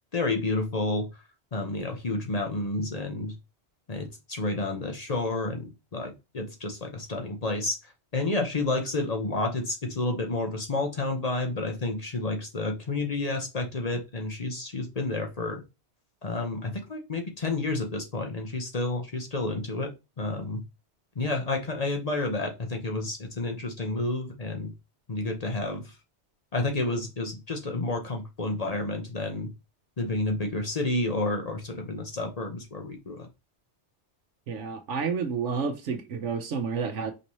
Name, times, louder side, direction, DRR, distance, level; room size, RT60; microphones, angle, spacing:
voice 1, 0.1-1.2 1.5-3.3 3.9-15.6 16.2-19.9 20.2-20.6 21.2-24.7 25.1-25.9 26.5-29.5 30.0-33.3, left 2 dB, 40° left, 0.8 m, -30 dB
voice 2, 34.5-37.1, right 5 dB, 80° right, 1.1 m, -30 dB
5.3 x 2.8 x 3.0 m
omnidirectional pair, 1.2 m